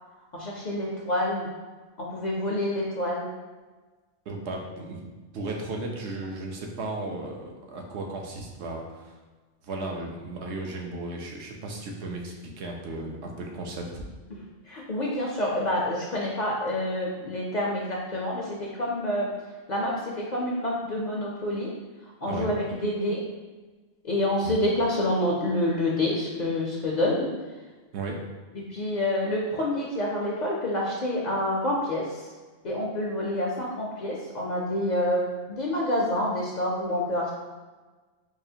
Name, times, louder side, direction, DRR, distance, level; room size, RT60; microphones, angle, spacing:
voice 1, 0.3-1.5 2.0-3.3 14.3-19.3 19.7-21.7 22.0-23.2 24.0-27.3 28.5-32.3 32.6-37.3, left 1 dB, 50° left, -3 dB, 0.5 m, -28 dB
voice 2, 4.3-9.1 9.6-14.0 22.2-22.5 24.4-24.5 27.9-28.2, right 2 dB, 75° right, 1 dB, 0.9 m, -35 dB
4.8 x 2.4 x 2.7 m, 1.3 s
omnidirectional pair, 1.2 m